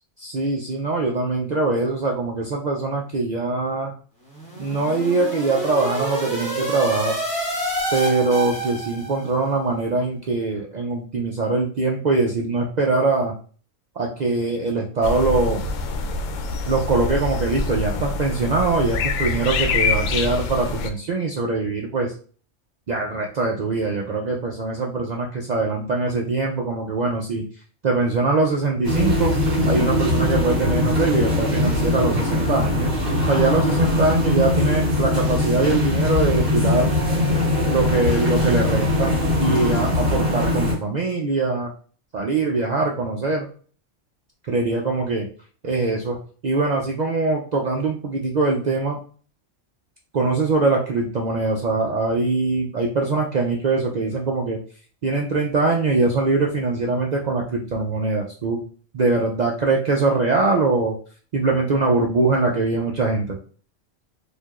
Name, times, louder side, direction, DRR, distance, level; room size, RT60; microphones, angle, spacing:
voice 1, 0.2-3.9 4.6-7.2 7.9-13.3 14.0-15.7 16.7-22.1 22.9-27.4 27.8-29.4 29.7-37.0 37.7-41.7 42.1-43.5 44.5-45.3 45.6-49.0 50.1-54.6 55.0-58.6 58.9-61.0 61.3-63.4, right 3 dB, 65° right, -1 dB, 0.4 m, -22 dB
sound 1, 4.3-9.3, right 1 dB, 25° left, 1.4 m, -28 dB
sound 2, 15.0-20.9, left 4 dB, 80° left, 0.9 m, -25 dB
sound 3, 28.8-40.7, left 1 dB, 35° right, 1.7 m, -21 dB
4.6 x 2.5 x 2.4 m, 0.41 s
omnidirectional pair, 1.3 m